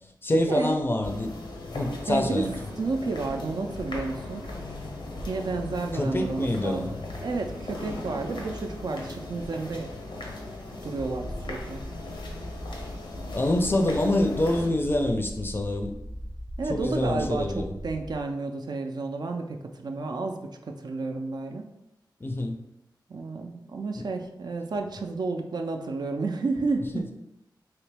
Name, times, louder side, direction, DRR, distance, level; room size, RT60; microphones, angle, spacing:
voice 1, 0.2-1.3 1.7-2.5 5.9-6.9 13.3-15.9 16.7-17.7 22.2-22.6 24.0-24.1 26.9-27.0, left 1 dB, 30° left, 4 dB, 0.4 m, -26 dB
sound 1, 1.0-14.7, left 2 dB, 90° left, 0.7 m, -38 dB
voice 2, 2.1-2.4 2.8-4.5 5.3-9.9 10.8-11.8 16.6-21.7 23.1-27.1, right 3 dB, 60° right, 4 dB, 0.4 m, -31 dB
sound 2, 11.0-18.2, equal, 30° right, 0.7 m, -40 dB
3.2 x 2.9 x 3.3 m, 0.86 s
wide cardioid pair, 105°, 8 cm